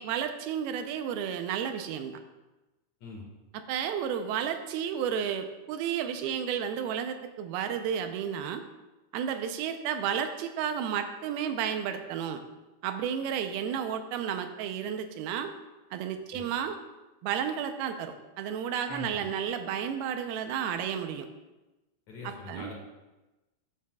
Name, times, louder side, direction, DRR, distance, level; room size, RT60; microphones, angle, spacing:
voice 1, 0.0-2.1 3.7-8.6 9.1-12.4 12.8-15.5 15.9-16.8 17.2-21.3 22.2-22.7, right 8 dB, 80° right, 7 dB, 2.4 m, -32 dB
voice 2, 18.9-19.3 22.1-22.7, left 2 dB, 55° left, -1 dB, 2.5 m, -42 dB
15.0 x 8.4 x 2.3 m, 1.1 s
omnidirectional pair, 4.7 m